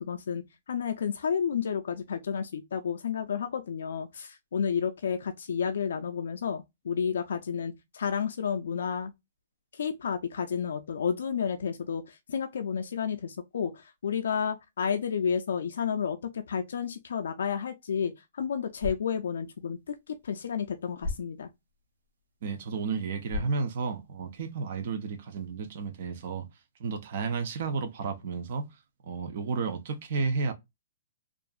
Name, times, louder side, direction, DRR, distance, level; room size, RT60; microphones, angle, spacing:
voice 1, 0.0-9.1 9.7-21.5, left 7 dB, 80° left, 0.3 m, -31 dB
sound 1, 18.6-24.6, left 1 dB, 80° right, 1.0 m, -42 dB
voice 2, 22.4-26.4 26.8-28.6 29.0-30.5, right 4 dB, 40° right, 0.5 m, -32 dB
2.7 x 2.4 x 2.2 m
hypercardioid pair, 175°, 0 cm